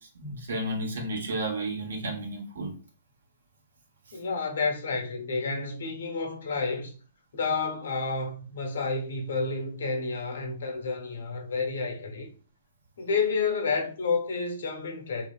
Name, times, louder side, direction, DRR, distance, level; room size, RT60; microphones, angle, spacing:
voice 1, 0.1-2.7, right 1 dB, 85° right, 1.0 m, -32 dB
voice 2, 4.1-6.9 7.3-12.3 13.0-15.3, left 4 dB, 80° left, 0.8 m, -30 dB
3.0 x 2.7 x 2.3 m
hypercardioid pair, 140°, 0 cm